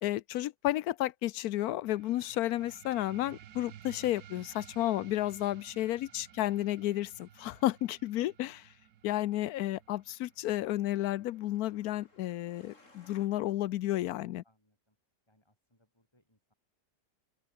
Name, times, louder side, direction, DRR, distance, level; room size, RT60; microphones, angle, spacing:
voice 1, 0.0-8.7 9.0-14.4, left 14 dB, 70° left, 1.0 m, -32 dB
sound 1, 1.9-12.9, right 11 dB, 65° right, 1.4 m, -55 dB
voice 2, 6.0-6.6 14.4-15.0 15.3-16.5, left 1 dB, 15° left, 6.9 m, -73 dB
Truck, 9.3-13.3, left 3 dB, 45° left, 4.3 m, -64 dB
open air
omnidirectional pair, 1.8 m